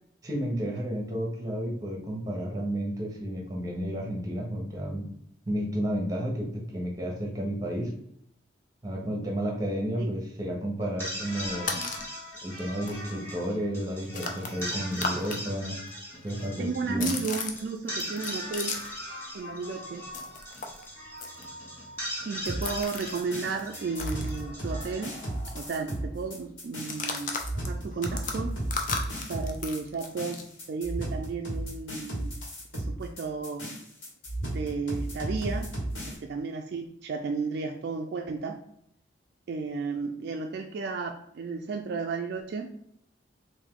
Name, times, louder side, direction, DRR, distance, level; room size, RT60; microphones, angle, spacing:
voice 1, 0.2-5.1 5.5-7.9 8.8-11.7 12.4-15.8 16.2-17.1, equal, 20° right, 0 dB, 0.8 m, -32 dB
sound 1, 10.8-26.1, equal, 15° left, 1.1 m, -39 dB
sound 2, 11.4-12.1 12.6-12.7 12.9-15.4 15.7-19.1 19.3-25.0 25.3-25.4 25.6-26.0 26.7-30.5, left 4 dB, 40° left, 0.5 m, -37 dB
voice 2, 16.6-18.8 19.3-20.0 22.3-25.2 25.5-27.4 27.7-28.5 29.3-30.4 30.7-32.3 32.7-33.6 34.4-35.7 36.1-38.6 39.5-42.7, right 4 dB, 55° right, 3 dB, 0.3 m, -33 dB
sound 3, 22.4-36.2, right 1 dB, 80° left, 1.5 m, -34 dB
3.6 x 2.6 x 3.6 m, 0.71 s
head